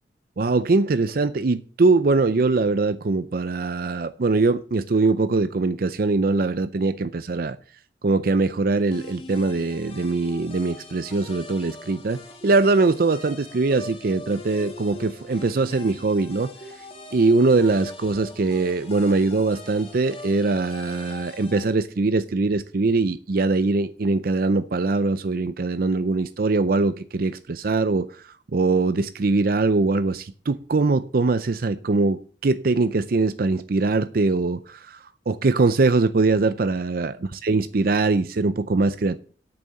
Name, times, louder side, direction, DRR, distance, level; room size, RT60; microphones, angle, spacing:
voice 1, 0.4-7.6 8.0-16.5 17.1-28.2 28.5-39.2, right 3 dB, 55° right, 0.5 m, -22 dB
sound 1, 8.9-21.7, left 2 dB, 35° left, 1.8 m, -42 dB
8.7 x 6.9 x 7.6 m
head